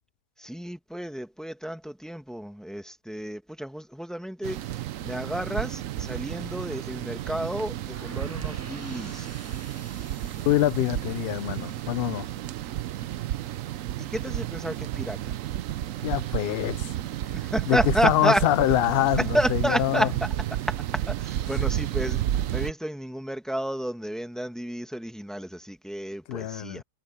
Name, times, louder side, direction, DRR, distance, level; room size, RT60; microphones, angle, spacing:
voice 1, 0.4-9.3 10.3-10.4 14.0-15.4 17.3-18.4 19.2-20.3 20.7-26.8, equal, ahead, 1.4 m, -31 dB
sound 1, 4.4-22.7, right 12 dB, 65° right, 0.9 m, -32 dB
sound 2, 7.9-13.8, right 2 dB, 20° right, 0.4 m, -50 dB
voice 2, 10.5-12.3 16.0-16.9 17.7-17.8 18.0-20.1 26.3-26.8, left 13 dB, 80° left, 0.5 m, -25 dB
omnidirectional pair, 1.7 m